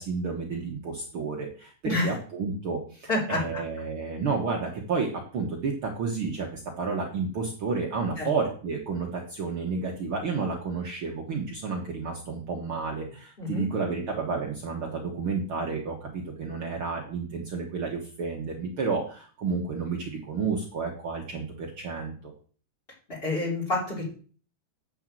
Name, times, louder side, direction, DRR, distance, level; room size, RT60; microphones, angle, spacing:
voice 1, 0.0-22.1, right 4 dB, 80° right, 0 dB, 1.1 m, -31 dB
voice 2, 1.8-2.1 3.1-3.6 8.2-8.3 13.4-13.7 23.1-24.1, left 2 dB, 15° left, -3 dB, 3.6 m, -28 dB
8.8 x 5.6 x 7.6 m, 0.42 s
omnidirectional pair, 4.7 m